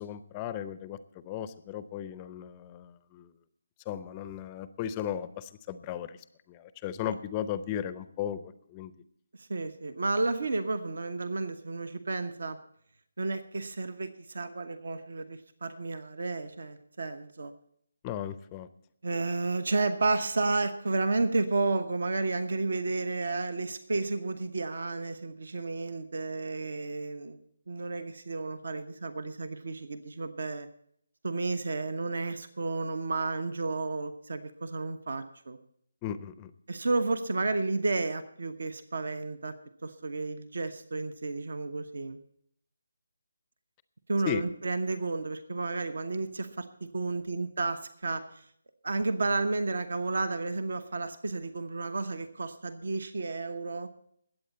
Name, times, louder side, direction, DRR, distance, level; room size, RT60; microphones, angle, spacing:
voice 1, 0.0-3.3 3.9-6.2 6.5-8.9 18.0-18.7 36.0-36.5 44.3-44.4, left 10 dB, 20° left, 13 dB, 0.6 m, -36 dB
voice 2, 9.4-12.6 13.2-17.5 19.0-27.4 27.7-30.7 31.2-35.6 36.7-39.5 39.8-42.2 44.1-48.4 48.8-53.9, right 3 dB, 55° right, 11 dB, 1.0 m, -32 dB
21.5 x 8.6 x 4.2 m, 0.68 s
figure-of-eight pair, 150°, 0 cm